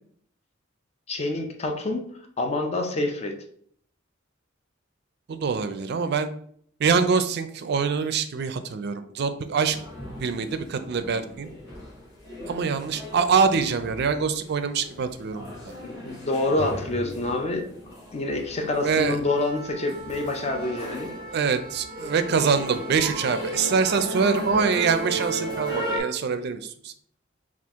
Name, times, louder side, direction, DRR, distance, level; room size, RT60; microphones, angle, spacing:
voice 1, 1.1-2.1 2.4-3.3 15.8-17.7 18.1-21.1, left 2 dB, 30° left, 4 dB, 0.5 m, -27 dB
voice 2, 5.3-6.3 6.8-9.8 10.2-11.5 12.5-15.5 18.8-19.2 21.3-26.9, right 5 dB, 55° right, 10 dB, 0.4 m, -24 dB
sound 1, 9.7-26.0, right 1 dB, 60° left, 1.3 m, -36 dB
4.4 x 2.4 x 3.5 m, 0.62 s
head